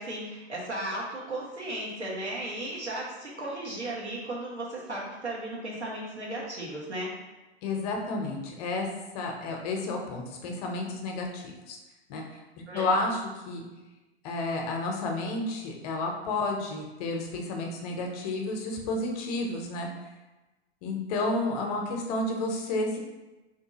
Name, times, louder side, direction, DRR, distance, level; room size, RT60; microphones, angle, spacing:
voice 1, 0.0-7.1 12.7-12.9, right 1 dB, 90° right, -5 dB, 1.1 m, -35 dB
voice 2, 7.6-8.9 9.1-11.8 12.1-12.2 12.7-13.2 13.5-13.6 14.2-19.9 20.8-23.0, left 2 dB, 35° left, 1 dB, 0.6 m, -31 dB
2.8 x 2.6 x 3.7 m, 1.1 s
figure-of-eight pair, 100°, 33 cm